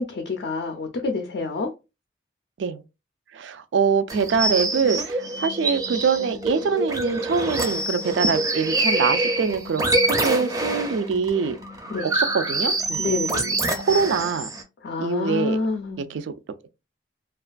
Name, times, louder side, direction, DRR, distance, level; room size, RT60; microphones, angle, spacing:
voice 1, 0.0-1.7 11.9-12.1 13.0-13.4 14.8-16.2, left 3 dB, 55° left, 0.4 m, -27 dB
voice 2, 3.3-11.6 12.0-14.5 15.0-15.6 16.0-16.3, right 5 dB, 80° right, 0.4 m, -24 dB
sound 1, 4.1-14.6, right 2 dB, 20° right, 0.4 m, -26 dB
2.4 x 2.4 x 2.2 m
head